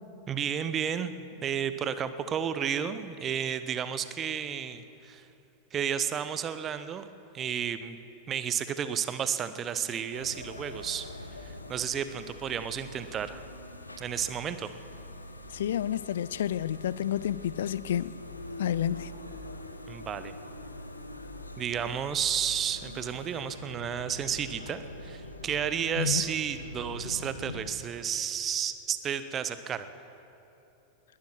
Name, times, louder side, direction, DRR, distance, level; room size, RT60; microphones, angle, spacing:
voice 1, 0.3-5.3 5.7-7.1 7.3-11.1 11.5-13.4 14.0-14.7 19.9-20.3 21.6-29.9, right 8 dB, 25° right, 0.8 m, -32 dB
sound 1, 10.1-27.7, left 1 dB, 80° left, 1.0 m, -44 dB
voice 2, 15.5-18.1 18.6-19.1 26.0-26.2, left 10 dB, 60° left, 0.4 m, -30 dB
20.0 x 11.5 x 6.0 m
figure-of-eight pair, 90°, 0 cm